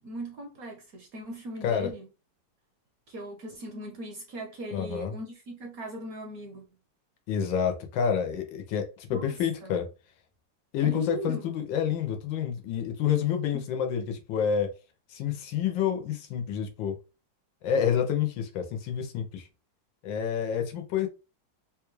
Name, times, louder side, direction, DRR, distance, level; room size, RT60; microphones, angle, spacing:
voice 1, 0.0-2.1 3.1-6.7 9.1-9.8 10.8-11.5 13.5-13.6, right 1 dB, 65° right, 0.9 m, -39 dB
voice 2, 4.7-5.1 7.3-9.9 10.7-14.7 15.1-17.0 17.6-19.5 20.0-21.1, left 8 dB, 85° left, 1.5 m, -28 dB
3.9 x 2.3 x 3.0 m
omnidirectional pair, 2.0 m